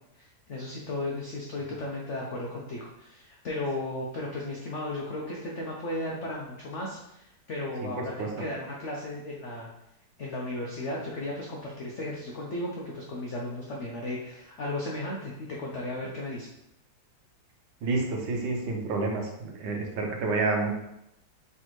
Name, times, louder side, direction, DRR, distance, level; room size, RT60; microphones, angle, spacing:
voice 1, 0.1-9.7 10.2-16.5, left 1 dB, 80° left, -2 dB, 0.6 m, -35 dB
voice 2, 7.8-8.3 17.8-20.7, right 3 dB, 85° right, 2 dB, 1.6 m, -29 dB
4.5 x 3.4 x 3.0 m, 0.83 s
omnidirectional pair, 2.1 m